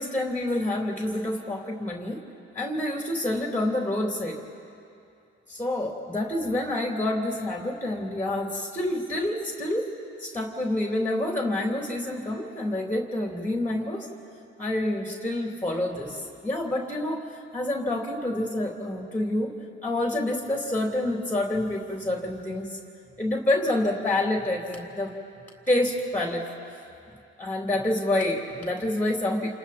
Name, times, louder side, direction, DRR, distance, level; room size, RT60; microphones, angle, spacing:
voice 1, 0.0-2.2 2.5-4.4 5.5-9.9 10.2-14.1 14.6-19.5 19.8-22.8 23.2-25.1 25.7-26.5 27.4-29.5, left 1 dB, 5° left, 0 dB, 3.1 m, -28 dB
28.5 x 28.5 x 4.3 m, 2.6 s
hypercardioid pair, 65°, 32 cm